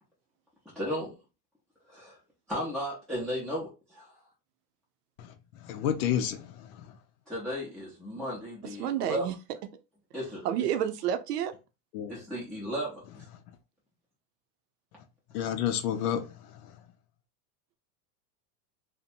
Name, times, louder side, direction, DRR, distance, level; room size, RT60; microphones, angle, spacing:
voice 1, 0.7-1.2 1.9-2.2 2.5-4.2 7.3-9.2 10.1-10.4 12.1-13.3, equal, ahead, 0.7 m, -35 dB
voice 2, 5.6-7.0 11.9-12.2 15.3-16.8, left 9 dB, 70° left, 0.6 m, -31 dB
voice 3, 8.6-9.3 10.4-11.5, right 10 dB, 75° right, 0.6 m, -29 dB
2.7 x 2.1 x 2.5 m
supercardioid pair, 135°, 46 cm